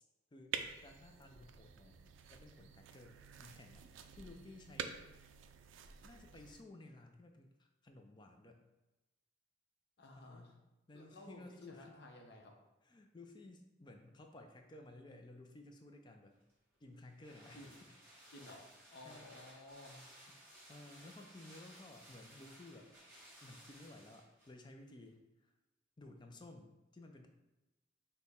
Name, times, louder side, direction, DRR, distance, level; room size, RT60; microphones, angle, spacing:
voice 1, 0.3-2.0 2.3-5.1 6.0-8.7 10.1-10.6 10.9-11.9 12.8-16.4 16.8-17.6 19.0-19.4 20.7-22.9 23.4-25.5 26.0-27.3, left 2 dB, 25° left, 4 dB, 0.4 m, -56 dB
sound 1, 0.5-6.6, right 7 dB, 80° right, 0.3 m, -48 dB
voice 2, 10.0-10.5 10.9-12.6 17.5-17.8 18.3-20.0, left 1 dB, 60° left, 2 dB, 0.7 m, -55 dB
sound 2, 16.4-24.6 24.9-25.0, equal, 10° right, 1.5 m, -59 dB
6.1 x 2.2 x 3.5 m, 1.0 s
head